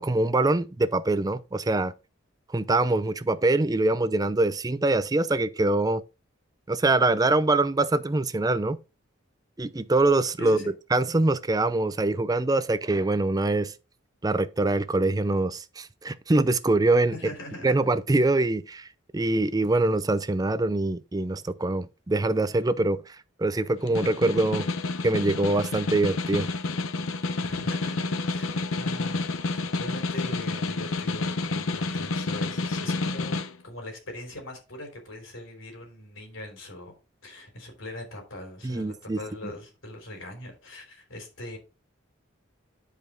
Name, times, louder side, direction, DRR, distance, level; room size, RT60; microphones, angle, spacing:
voice 1, 0.0-1.9 2.5-6.0 6.7-8.8 9.6-10.6 10.9-13.7 14.2-17.1 17.6-18.9 19.1-24.7 25.0-26.5 38.6-39.2, right 2 dB, 20° right, 0.4 m, -24 dB
voice 2, 10.4-10.7 17.1-17.7 27.4-33.4 33.6-36.9 37.2-41.6, left 1 dB, 70° left, 3.6 m, -41 dB
Snare drum, 23.7-33.5, left 3 dB, 90° left, 0.8 m, -29 dB
9.6 x 5.0 x 3.8 m
head